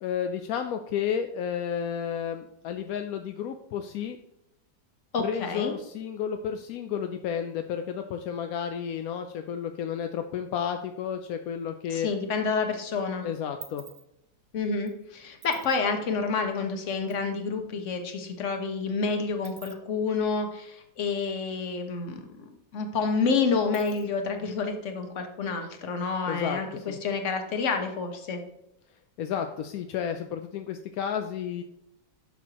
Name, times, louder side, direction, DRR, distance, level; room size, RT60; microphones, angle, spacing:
voice 1, 0.0-4.2 5.2-12.1 13.2-13.8 26.3-27.0 29.2-31.6, left 8 dB, 70° left, 6 dB, 0.8 m, -32 dB
voice 2, 5.1-5.7 11.9-13.2 14.5-22.4 22.7-28.4, left 4 dB, 50° left, 5 dB, 1.2 m, -29 dB
sound 1, 12.7-12.8 13.0-17.2 17.5-17.6 17.9-21.7 22.0-22.1 22.4-24.4, right 8 dB, 90° right, 1.8 m, -50 dB
11.0 x 6.3 x 2.9 m, 0.82 s
omnidirectional pair, 1.9 m